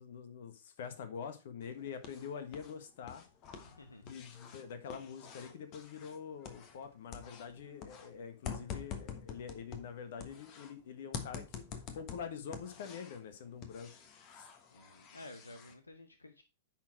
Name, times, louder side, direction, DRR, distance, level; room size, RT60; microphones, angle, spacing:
voice 1, 0.0-3.2 4.0-11.6 11.9-13.9 14.3-14.5, left 7 dB, 55° left, 1.4 m, -45 dB
sound 1, 1.6-2.7 3.0-6.9 7.1-10.7 11.1-13.2 13.6-15.7, left 7 dB, 35° left, 1.3 m, -47 dB
voice 2, 3.6-4.2 14.7-16.4, left 2 dB, 80° left, 0.9 m, -53 dB
10.0 x 4.4 x 4.6 m
figure-of-eight pair, 105°, 0 cm